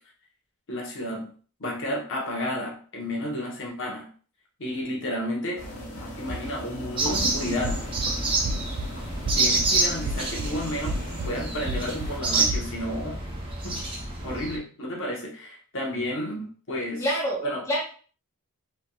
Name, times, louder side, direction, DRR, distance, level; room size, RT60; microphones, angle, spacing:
voice 1, 0.7-1.3 1.6-4.1 4.6-5.6 6.2-7.8 9.3-11.0 11.2-13.2 13.6-13.8 14.2-17.0 17.4-17.6, left 1 dB, 60° left, -1 dB, 0.9 m, -31 dB
sound 1, 5.6-12.2, left 1 dB, 80° left, 1.1 m, -37 dB
sound 2, 7.0-14.6, right 3 dB, 25° right, 0.6 m, -28 dB
sound 3, 7.6-8.1 8.4-8.9 9.2-9.7 10.0-10.5 10.9-11.3 11.7-12.1 12.5-12.7, right 1 dB, 85° right, 0.4 m, -30 dB
voice 2, 17.0-17.8, equal, 15° left, -4 dB, 0.7 m, -27 dB
3.3 x 2.8 x 2.2 m, 0.41 s
head